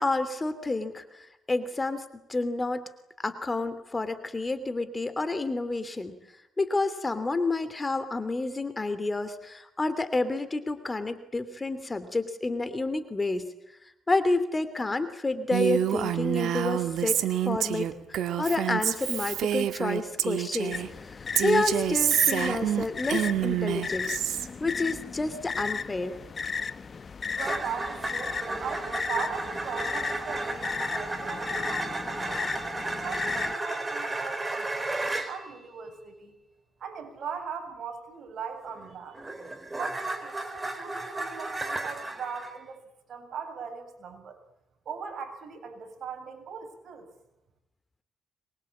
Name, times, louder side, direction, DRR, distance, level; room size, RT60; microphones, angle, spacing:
voice 1, 0.0-2.8 3.2-6.2 6.6-13.5 14.1-17.2 17.4-26.1, left 2 dB, 20° left, 12 dB, 2.9 m, -30 dB
Female speech woman speaking, 15.5-20.9 21.3-24.5, right 11 dB, 75° right, 2.1 m, -27 dB
sound 1, 20.7-33.5, left 5 dB, 40° left, 1.0 m, -35 dB
sound 2, 27.4-35.4 38.7-42.5, right 2 dB, 20° right, 4.0 m, -33 dB
voice 2, 27.4-31.9 32.2-32.4 33.0-36.3 36.8-39.2 39.8-42.8 43.1-44.4 44.9-47.1, right 6 dB, 60° right, 5 dB, 7.4 m, -39 dB
25.0 x 23.0 x 8.7 m, 0.88 s
cardioid pair, 90°, 0 cm